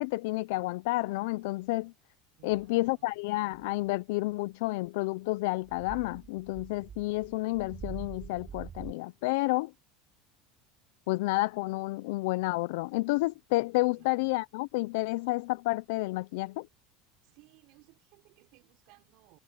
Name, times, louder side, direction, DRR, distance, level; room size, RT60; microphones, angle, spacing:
voice 1, 0.0-1.9 2.4-9.7 11.1-16.7, left 22 dB, 80° left, 0.4 m, -30 dB
voice 2, 2.4-3.1 13.9-14.4 17.2-19.4, right 23 dB, 65° right, 5.3 m, -61 dB
sound 1, 2.5-2.8 3.5-3.9 4.8-4.9 5.6-8.9, right 8 dB, 30° right, 5.2 m, -45 dB
supercardioid pair, 125°, 0 cm